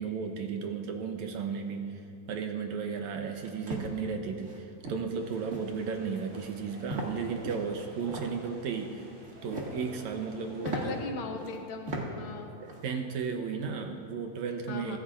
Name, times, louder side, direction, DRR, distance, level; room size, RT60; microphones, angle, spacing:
voice 1, 0.0-2.0 2.3-9.1 9.4-11.0 12.6-15.0, right 5 dB, 70° right, 4 dB, 2.0 m, -34 dB
sound 1, 3.3-3.9 4.4-4.6 4.8-5.1 5.5-5.8 6.1-6.5 6.9-7.1 7.4-8.3 9.2-9.8 10.2-10.3 10.6-10.8 11.4-11.5 11.9-12.0 12.4-12.8, right 2 dB, 30° right, 1.5 m, -37 dB
sound 2, 5.2-11.0, right 1 dB, 45° right, 4.5 m, -53 dB
voice 2, 10.6-12.5 14.7-15.0, left 4 dB, 70° left, 4 dB, 1.9 m, -38 dB
24.5 x 14.0 x 2.5 m, 2.5 s
omnidirectional pair, 3.6 m